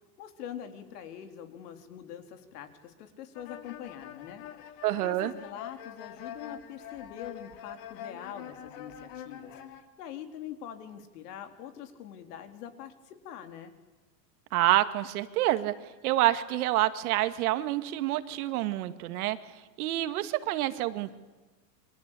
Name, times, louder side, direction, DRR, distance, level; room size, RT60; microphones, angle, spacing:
voice 1, 0.2-13.7, left 9 dB, 70° left, 7 dB, 4.2 m, -44 dB
sound 1, 3.3-9.8, left 10 dB, 50° left, 3.0 m, -45 dB
voice 2, 4.8-5.3 14.5-15.7 16.0-19.4 19.8-21.1, right 15 dB, 65° right, 10 dB, 2.1 m, -27 dB
29.0 x 24.5 x 8.5 m, 1.2 s
supercardioid pair, 155°, 48 cm